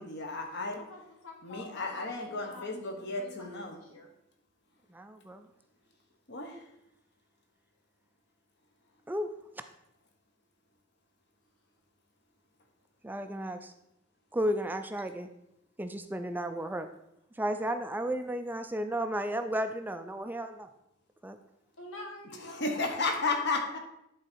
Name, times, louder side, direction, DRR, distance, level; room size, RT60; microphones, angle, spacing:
voice 1, 0.0-0.8 1.4-3.8 6.3-6.6 22.4-23.8, left 3 dB, 60° left, 3 dB, 1.3 m, -33 dB
voice 2, 0.7-3.5 3.8-4.1 21.8-23.8, left 1 dB, 80° left, 0 dB, 1.9 m, -48 dB
voice 3, 4.9-5.4 9.1-9.3 13.0-13.7 14.3-15.3 15.8-16.9 17.4-20.7 21.2-21.4, right 1 dB, 10° right, 8 dB, 0.4 m, -33 dB
11.0 x 4.0 x 4.5 m, 0.80 s
head